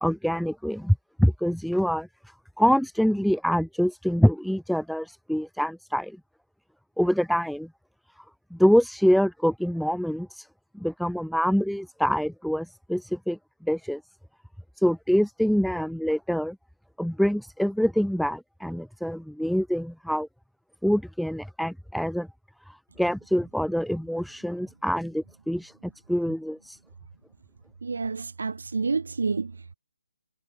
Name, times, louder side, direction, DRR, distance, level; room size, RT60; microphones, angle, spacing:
voice 1, 0.0-2.1 2.6-6.2 7.0-7.7 8.5-10.5 10.7-14.0 14.8-16.6 17.0-20.3 20.8-22.3 22.7-25.7 26.1-26.8, equal, ahead, 0.5 m, -25 dB
voice 2, 27.8-29.7, right 4 dB, 65° right, 2.4 m, -29 dB
figure-of-eight pair, 145°, 0 cm